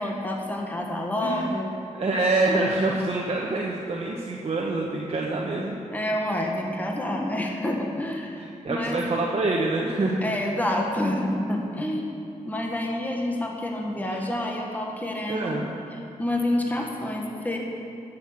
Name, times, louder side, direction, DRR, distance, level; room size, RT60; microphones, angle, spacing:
voice 1, 0.0-1.7 5.9-9.2 10.2-12.1 12.4-15.6 16.2-17.6, left 1 dB, 10° left, 0 dB, 1.6 m, -28 dB
voice 2, 1.2-1.6 1.9-5.7 8.4-10.2 14.1-14.2 15.3-15.7, right 2 dB, 50° right, -2 dB, 1.2 m, -26 dB
11.5 x 6.5 x 7.5 m, 2.6 s
cardioid pair, 70°, 13 cm